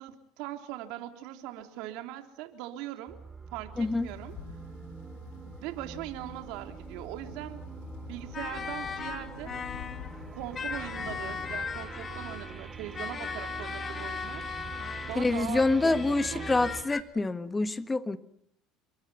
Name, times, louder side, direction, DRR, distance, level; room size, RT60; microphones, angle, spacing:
voice 1, 0.0-3.2 3.5-4.3 5.6-7.6 8.1-9.6 10.3-14.5 15.1-16.7, right 13 dB, 75° right, 3.3 m, -40 dB
sound 1, 3.1-16.8, right 5 dB, 15° right, 3.3 m, -44 dB
sound 2, 3.7-11.6, left 15 dB, 85° left, 1.4 m, -48 dB
voice 2, 3.8-4.1 15.1-18.2, left 3 dB, 15° left, 1.5 m, -26 dB
sound 3, 8.3-10.2 10.6-15.4 15.9-17.0, left 6 dB, 30° left, 2.2 m, -38 dB
29.5 x 23.5 x 5.7 m
cardioid pair, 120°, 0 cm